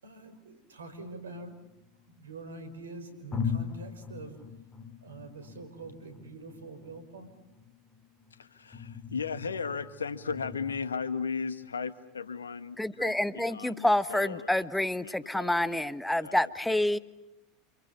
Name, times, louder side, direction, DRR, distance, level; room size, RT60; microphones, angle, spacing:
voice 1, 0.0-1.6 2.2-4.4 5.0-7.3, right 3 dB, 85° right, 10 dB, 5.5 m, -45 dB
sound 1, 0.9-2.2 2.8-2.9 3.3-10.8, left 6 dB, 25° left, 3.7 m, -40 dB
voice 2, 8.3-14.7 15.0-16.8, left 5 dB, 90° left, 12 dB, 1.7 m, -37 dB
voice 3, 12.8-17.0, left 1 dB, 5° left, 14 dB, 1.3 m, -28 dB
29.0 x 28.5 x 7.0 m, 0.90 s
hypercardioid pair, 85°, 0 cm